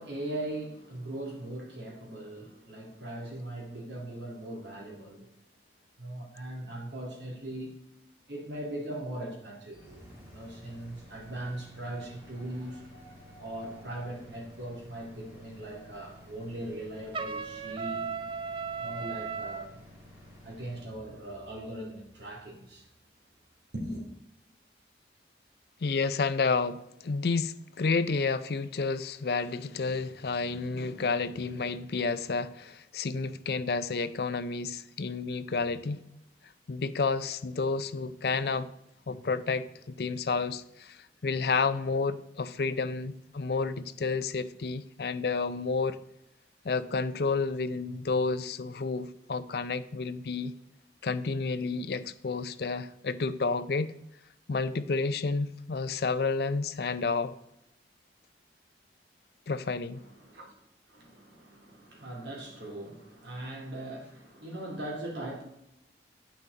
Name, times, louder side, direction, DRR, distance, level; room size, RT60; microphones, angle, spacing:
voice 1, 0.0-5.3 6.0-7.7 8.3-18.1 18.8-19.8 20.4-22.9 23.7-24.1 59.9-60.6 60.9-65.4, right 1 dB, 75° right, -1 dB, 2.7 m, -40 dB
sound 1, 9.7-23.6, equal, 15° right, 2.3 m, -53 dB
Trumpet, 17.1-19.7, right 5 dB, 30° right, 0.4 m, -36 dB
voice 2, 25.8-36.0 36.7-38.7 39.1-46.0 46.6-50.5 51.0-53.9 54.5-57.3 59.5-60.0, left 4 dB, 60° left, 13 dB, 0.5 m, -30 dB
8.9 x 6.0 x 4.0 m, 0.82 s
head